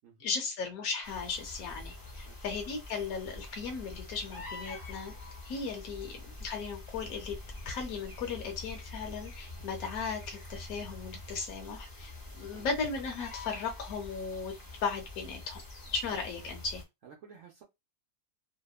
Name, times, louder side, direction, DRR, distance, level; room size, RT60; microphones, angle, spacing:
voice 1, 0.2-5.1 5.4-7.4 7.7-14.5 14.8-15.6 15.9-16.8, left 5 dB, 80° left, 1.1 m, -36 dB
sound 1, 1.0-16.8, left 2 dB, 20° left, 0.6 m, -46 dB
voice 2, 17.0-17.6, right 6 dB, 65° right, 0.8 m, -54 dB
2.8 x 2.1 x 2.3 m
omnidirectional pair, 1.5 m